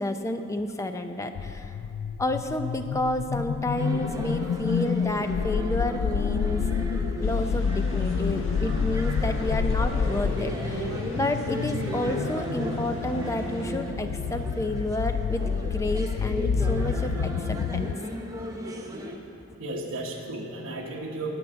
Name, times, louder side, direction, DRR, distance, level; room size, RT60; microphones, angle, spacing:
voice 1, 0.0-1.8 2.2-6.6 7.2-15.4 15.7-17.9, left 1 dB, 15° left, 7 dB, 0.5 m, -30 dB
sound 1, 1.3-17.9, left 6 dB, 80° left, 0.3 m, -29 dB
sound 2, 3.8-19.2, equal, 15° right, 0.9 m, -36 dB
voice 2, 4.4-4.8 8.6-8.8 19.6-21.4, right 2 dB, 75° right, -3 dB, 1.2 m, -35 dB
sound 3, 7.2-13.7, left 1 dB, 60° left, 1.3 m, -39 dB
9.6 x 9.5 x 7.9 m, 2.7 s
head